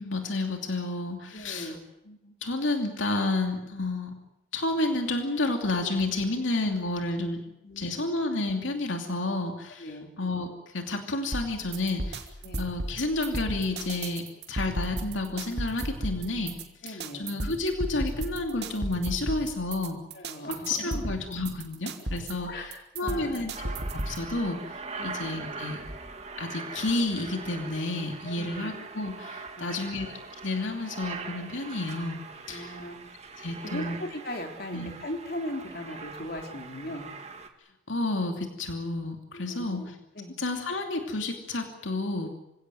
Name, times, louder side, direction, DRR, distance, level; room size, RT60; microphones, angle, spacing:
voice 1, 0.0-1.7 2.1-4.2 4.5-7.4 7.8-12.3 12.6-16.6 16.8-20.0 20.5-22.7 23.0-25.8 26.4-30.1 30.4-32.2 32.5-32.8 33.4-34.0 34.7-34.9 37.9-39.9 40.4-42.3, left 2 dB, 85° left, 4 dB, 2.7 m, -30 dB
voice 2, 1.3-1.8 7.6-8.1 9.8-10.1 12.4-12.7 16.8-17.4 20.1-21.1 22.4-23.5 25.0-25.2 28.3-28.7 29.6-30.0 32.5-33.0 33.6-37.1 39.3-39.9 40.2-40.3, left 1 dB, 50° left, 3 dB, 3.8 m, -39 dB
sound 1, 11.3-24.3, right 1 dB, 60° right, 2.7 m, -35 dB
Aircraft, 23.5-37.5, right 4 dB, 35° right, 2.2 m, -41 dB
27.0 x 17.0 x 9.2 m, 0.90 s
head